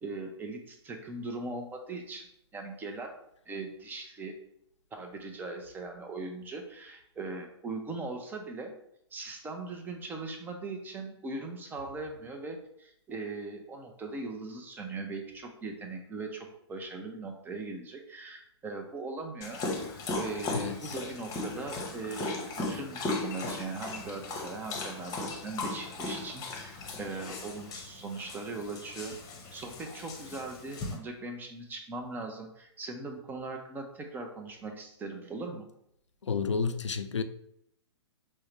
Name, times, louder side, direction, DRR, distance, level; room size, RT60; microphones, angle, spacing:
voice 1, 0.0-3.1 3.5-4.4 4.9-8.7 9.1-19.6 20.1-29.2 29.5-35.7, right 3 dB, 15° right, 0.5 m, -40 dB
Dog, 19.4-31.0, left 3 dB, 25° left, 0.8 m, -37 dB
voice 2, 20.5-20.9 36.2-37.2, left 5 dB, 85° left, 0.4 m, -31 dB
5.4 x 2.1 x 3.2 m
figure-of-eight pair, 115°, 15 cm